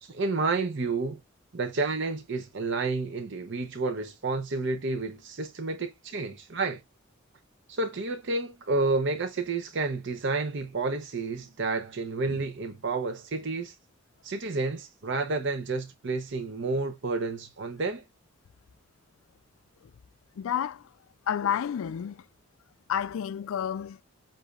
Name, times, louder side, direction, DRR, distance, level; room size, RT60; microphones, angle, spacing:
voice 1, 0.0-1.2 1.5-6.8 7.7-13.7 14.2-18.0, right 3 dB, 60° right, 0.7 m, -30 dB
voice 2, 20.4-20.9 21.3-22.2 22.9-24.0, left 9 dB, 75° left, 0.3 m, -30 dB
7.8 x 2.7 x 2.4 m
head